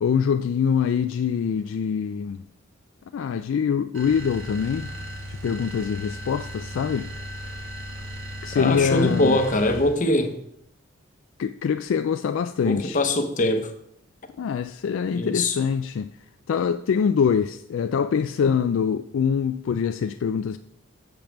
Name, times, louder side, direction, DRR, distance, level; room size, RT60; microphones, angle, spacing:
voice 1, 0.0-2.4 3.1-4.9 5.3-7.1 8.2-9.4 11.4-13.0 14.4-16.1 16.5-20.6, left 7 dB, 65° left, 0.3 m, -24 dB
sound 1, 3.9-10.1, equal, 70° right, 1.5 m, -36 dB
voice 2, 8.5-10.3 12.6-13.7 15.1-15.6, left 2 dB, 35° left, 0.8 m, -22 dB
7.2 x 5.2 x 5.9 m
head